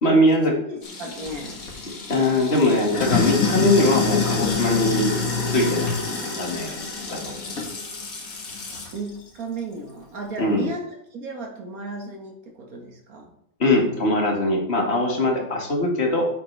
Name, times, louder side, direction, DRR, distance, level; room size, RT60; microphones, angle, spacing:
voice 1, 0.0-0.5 2.1-5.2 5.5-5.9 6.4-6.7 7.1-7.4 10.4-10.7 13.6-16.3, left 1 dB, 50° left, 0 dB, 2.1 m, -21 dB
voice 2, 0.6-1.6 8.9-13.3, right 2 dB, 85° right, 2 dB, 2.1 m, -34 dB
Sink (filling or washing), 0.8-9.0, left 4 dB, 80° left, 2.0 m, -27 dB
9.3 x 7.8 x 3.4 m, 0.74 s
omnidirectional pair, 1.5 m